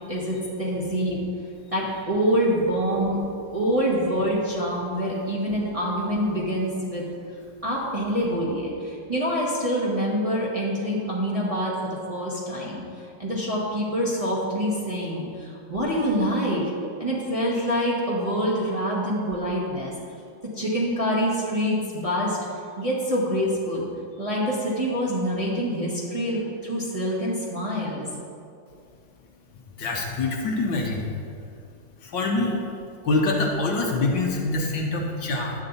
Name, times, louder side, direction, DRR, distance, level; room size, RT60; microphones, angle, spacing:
voice 1, 0.1-1.2 1.7-3.2 3.5-7.0 7.6-12.8 13.2-16.7 17.0-19.9 20.5-22.4 22.8-23.8 24.2-28.1, equal, 20° right, -6 dB, 1.4 m, -26 dB
voice 2, 29.8-31.1 32.0-32.6 33.0-35.5, left 2 dB, 65° left, 0 dB, 1.7 m, -25 dB
11.0 x 8.5 x 4.1 m, 2.4 s
omnidirectional pair, 2.2 m